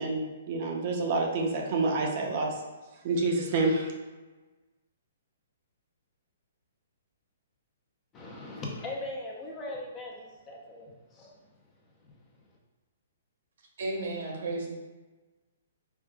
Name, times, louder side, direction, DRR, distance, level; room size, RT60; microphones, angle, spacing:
voice 1, 0.0-2.6 3.0-3.9, right 3 dB, 45° right, 0 dB, 0.6 m, -28 dB
voice 2, 8.1-11.3, left 2 dB, 20° left, -2 dB, 0.6 m, -39 dB
voice 3, 13.8-14.7, right 2 dB, 70° right, -1 dB, 1.0 m, -33 dB
4.5 x 2.3 x 2.3 m, 1.2 s
hypercardioid pair, 150°, 0 cm